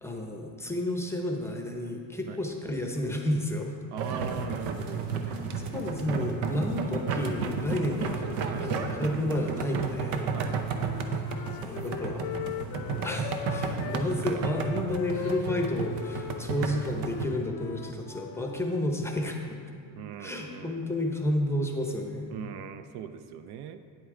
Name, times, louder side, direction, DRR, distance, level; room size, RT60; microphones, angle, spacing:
voice 1, 0.0-3.7 5.7-10.3 11.2-11.3 11.6-12.3 13.0-19.4 20.2-22.3, left 1 dB, 5° left, 2 dB, 0.7 m, -31 dB
voice 2, 3.9-5.8 8.5-8.7 10.3-10.7 13.6-14.5 19.9-20.8 22.3-23.8, right 8 dB, 65° right, 10 dB, 0.5 m, -41 dB
sound 1, 4.0-17.3, right 5 dB, 85° right, 0.9 m, -32 dB
Wind instrument woodwind instrument, 10.2-14.1 14.4-18.7, left 10 dB, 60° left, 0.6 m, -40 dB
9.3 x 8.1 x 3.7 m, 2.2 s
cardioid pair, 140°, 43 cm